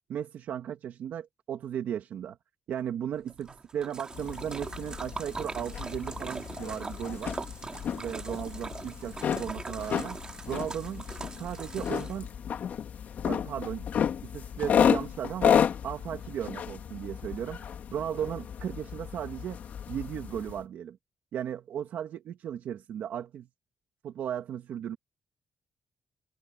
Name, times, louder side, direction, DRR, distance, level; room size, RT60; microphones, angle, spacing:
voice 1, 0.1-2.4 2.7-7.3 7.9-10.2 10.5-11.0 11.4-12.3 13.2-13.9 14.2-19.6 19.9-21.0 21.3-23.5 24.0-25.0, right 9 dB, 85° right, 1.9 m, -36 dB
Splash splatter, 3.3-12.4, right 3 dB, 25° right, 3.0 m, -42 dB
sound 1, 4.1-20.6, left 8 dB, 65° left, 2.8 m, -32 dB
cardioid pair, 125°, 3 cm